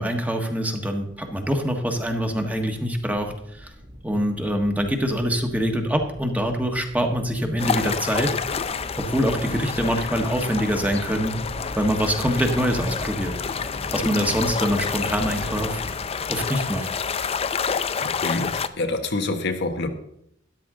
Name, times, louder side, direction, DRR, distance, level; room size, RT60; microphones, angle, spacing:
voice 1, 0.0-3.7 4.0-8.3 8.9-11.3 11.8-13.3 13.9-15.8 16.3-16.9, equal, 10° right, 3 dB, 1.4 m, -24 dB
sound 1, 1.2-17.7, equal, 45° right, 2.3 m, -40 dB
sound 2, 7.6-18.7, left 6 dB, 30° left, 0.5 m, -29 dB
voice 2, 18.0-19.9, left 2 dB, 60° left, 6 dB, 1.2 m, -27 dB
13.0 x 11.0 x 3.8 m, 0.74 s
head